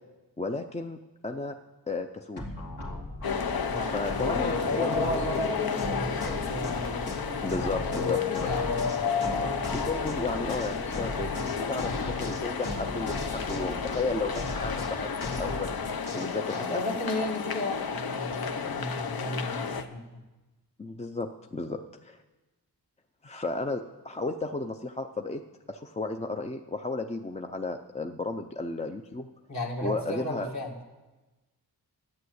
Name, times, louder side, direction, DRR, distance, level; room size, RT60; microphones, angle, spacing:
voice 1, 0.4-1.6 1.9-2.4 3.9-5.2 7.4-8.2 9.7-15.7 16.1-16.8 18.6-18.8 20.8-22.2 23.2-25.4 25.7-29.3 29.8-30.5, left 3 dB, 20° left, 6 dB, 0.4 m, -33 dB
sound 1, 2.4-16.6, left 2 dB, 80° left, 2.6 m, -37 dB
sound 2, 3.2-19.8, left 6 dB, 65° left, 0.8 m, -32 dB
voice 2, 3.7-4.0 4.6-9.9 16.6-20.2 29.5-30.7, left 1 dB, 45° left, 1 dB, 2.0 m, -35 dB
11.0 x 9.4 x 7.9 m, 1.1 s
wide cardioid pair, 145°, 39 cm